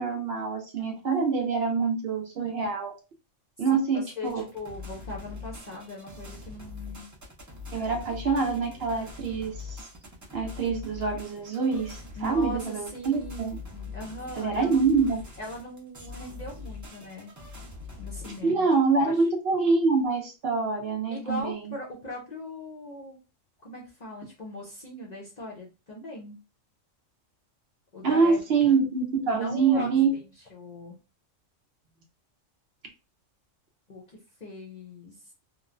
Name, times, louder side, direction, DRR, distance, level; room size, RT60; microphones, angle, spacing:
voice 1, 0.0-2.9 3.6-4.5 7.7-9.8 10.3-13.5 14.4-15.2 18.4-21.7 28.0-30.1, right 4 dB, 60° right, 3 dB, 0.8 m, -25 dB
voice 2, 4.2-7.1 12.2-15.0 15.4-17.3 18.0-18.7 19.0-19.1 21.1-23.2 23.6-26.4 27.9-28.4 28.6-28.8 29.3-30.2 30.5-31.0 33.9-35.1, left 1 dB, 45° left, -2 dB, 0.6 m, -39 dB
sound 1, 4.2-18.4, left 4 dB, 30° right, 0.3 m, -42 dB
2.9 x 2.0 x 2.4 m, 0.30 s
omnidirectional pair, 1.3 m